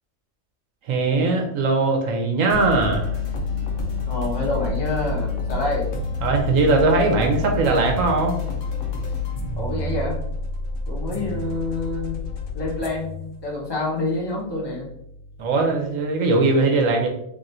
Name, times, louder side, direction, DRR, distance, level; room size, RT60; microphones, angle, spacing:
voice 1, 0.8-3.1 6.2-8.4 15.4-17.1, right 3 dB, 70° right, 3 dB, 1.1 m, -20 dB
sound 1, 2.5-15.9, left 4 dB, 90° left, 1.2 m, -29 dB
voice 2, 4.1-5.8 9.6-10.2 10.8-12.2 12.5-14.9, left 2 dB, 20° left, -4 dB, 0.9 m, -27 dB
3.2 x 2.5 x 4.2 m, 0.76 s
omnidirectional pair, 1.4 m